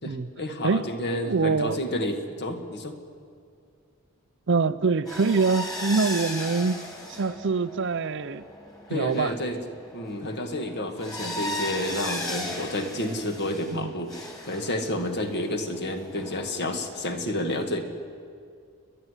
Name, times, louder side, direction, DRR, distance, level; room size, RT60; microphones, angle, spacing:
voice 1, 0.0-2.9 8.9-9.6 9.9-17.8, left 1 dB, 50° left, 2.0 m, -30 dB
voice 2, 1.2-1.8 4.5-6.8 7.1-8.4 8.9-9.3 13.7-13.9, right 4 dB, 55° right, 0.6 m, -24 dB
sound 1, 5.1-13.8 14.1-17.1, left 1 dB, 15° left, 3.0 m, -37 dB
30.0 x 11.0 x 9.9 m
head